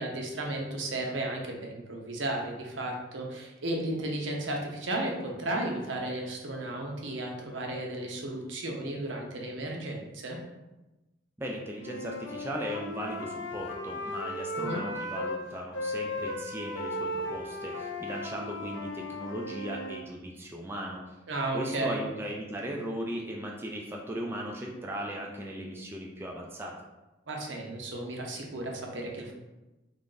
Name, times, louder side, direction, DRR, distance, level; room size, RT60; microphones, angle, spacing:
voice 1, 0.0-10.4 14.5-14.8 21.3-22.0 27.3-29.3, right 1 dB, 80° right, 0 dB, 0.7 m, -34 dB
voice 2, 11.4-21.0 21.5-26.8, equal, 10° right, -1 dB, 0.3 m, -37 dB
Wind instrument woodwind instrument, 11.8-15.4 15.7-20.0, left 1 dB, 75° left, 0.5 m, -36 dB
3.4 x 2.5 x 3.8 m, 1.0 s
head